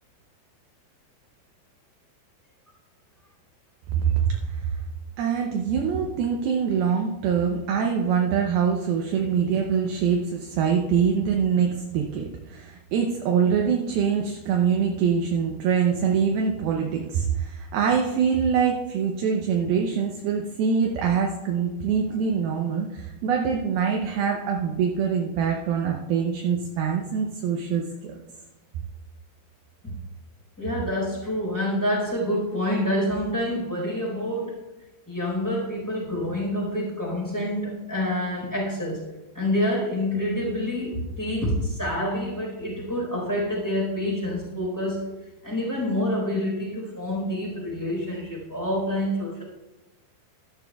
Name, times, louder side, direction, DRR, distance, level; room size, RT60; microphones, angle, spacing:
voice 1, 3.9-4.8 5.2-28.2, right 7 dB, 80° right, 1 dB, 2.3 m, -24 dB
voice 2, 30.6-34.6 35.1-39.0 39.3-45.1 45.4-49.4, left 1 dB, 5° left, -3 dB, 3.5 m, -27 dB
14.0 x 12.0 x 2.3 m, 1.1 s
omnidirectional pair, 5.1 m